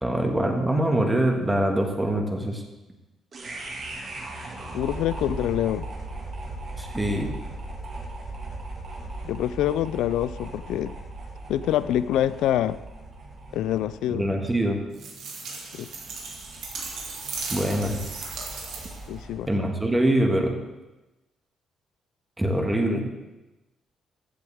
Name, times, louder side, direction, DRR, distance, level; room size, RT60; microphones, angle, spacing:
voice 1, 0.0-2.6 6.8-7.3 14.1-14.8 17.5-18.0 19.5-20.5 22.4-23.1, right 1 dB, 15° right, 3 dB, 1.8 m, -24 dB
sound 1, 3.3-19.5, right 2 dB, 50° right, 2.3 m, -39 dB
voice 2, 4.7-5.9 9.2-10.9 11.5-12.8 13.5-14.3 15.7-15.9 19.1-19.5, left 12 dB, 85° left, 16 dB, 0.4 m, -25 dB
sound 2, 14.9-19.1, right 4 dB, 80° right, 2.4 m, -36 dB
14.5 x 7.9 x 3.6 m, 1.0 s
cardioid pair, 90°, 0 cm